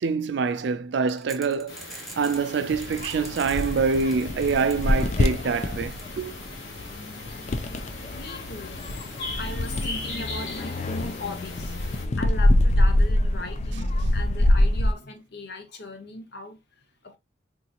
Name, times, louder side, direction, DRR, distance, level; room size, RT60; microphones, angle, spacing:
voice 1, 0.0-6.3, right 5 dB, 60° right, 0.4 m, -26 dB
sound 1, 1.1-2.4 2.8-5.4 5.9-6.0, right 1 dB, ahead, 0.6 m, -43 dB
sound 2, 1.7-12.1, left 2 dB, 75° left, 1.2 m, -40 dB
sound 3, 2.7-14.9, left 1 dB, 35° left, 0.4 m, -25 dB
voice 2, 8.1-9.0 9.4-11.8 12.2-16.6 17.0-17.2, left 2 dB, 55° left, 0.8 m, -38 dB
3.8 x 2.9 x 2.3 m
head